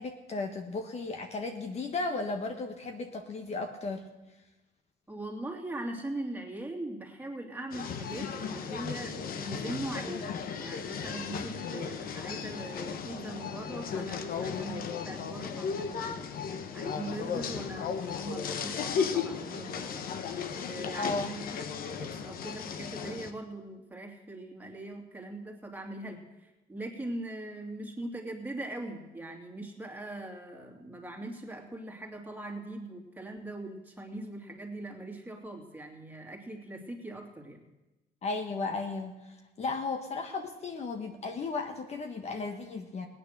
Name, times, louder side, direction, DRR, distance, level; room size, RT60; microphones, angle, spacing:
voice 1, 0.0-4.0 20.9-21.4 38.2-43.1, left 3 dB, 40° left, 5 dB, 1.3 m, -35 dB
voice 2, 5.1-20.0 20.6-21.5 22.0-37.6, right 1 dB, 10° right, 0 dB, 2.8 m, -41 dB
sound 1, 7.7-23.3, left 6 dB, 60° left, 1.2 m, -35 dB
17.5 x 9.7 x 6.8 m, 1.1 s
cardioid pair, 110°, 17 cm